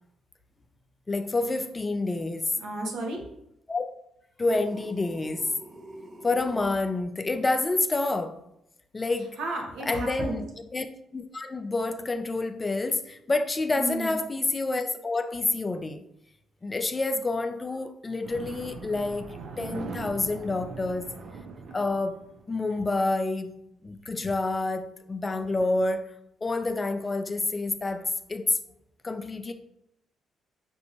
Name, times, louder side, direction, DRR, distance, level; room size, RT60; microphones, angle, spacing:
voice 1, 1.1-2.5 3.7-3.9 4.4-5.5 6.2-8.4 8.9-9.4 9.8-10.4 10.7-16.1 16.6-21.1 21.7-23.5 23.8-26.1 26.4-28.6 29.0-29.5, left 2 dB, 25° left, 0.4 m, -28 dB
voice 2, 2.6-3.2 9.4-10.4 13.8-14.2, right 1 dB, 80° right, 1.0 m, -32 dB
sound 1, 4.4-6.8, right 1 dB, 45° right, 1.0 m, -46 dB
sound 2, 18.2-22.7, right 4 dB, 65° right, 0.5 m, -41 dB
5.3 x 2.6 x 2.9 m
cardioid pair, 90°, 0 cm